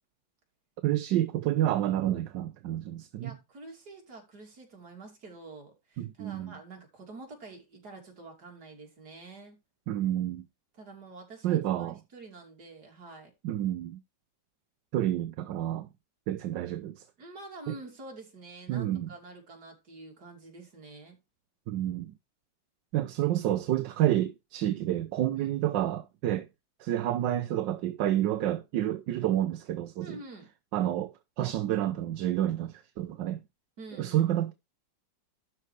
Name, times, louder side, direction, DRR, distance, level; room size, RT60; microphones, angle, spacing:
voice 1, 0.8-3.4 6.0-6.5 9.9-10.4 11.4-12.0 13.4-14.0 14.9-15.9 16.3-17.0 17.7-17.8 18.7-19.1 21.7-22.1 22.9-26.5 26.8-30.2 30.7-31.1 31.4-33.4 34.0-34.5, right 12 dB, 70° right, 1.3 m, -29 dB
voice 2, 3.2-9.6 10.8-13.3 16.5-16.6 17.2-21.2 25.3-25.5 30.0-30.5 33.8-34.3, right 3 dB, 55° right, 3.3 m, -47 dB
12.0 x 4.6 x 4.6 m
omnidirectional pair, 2.1 m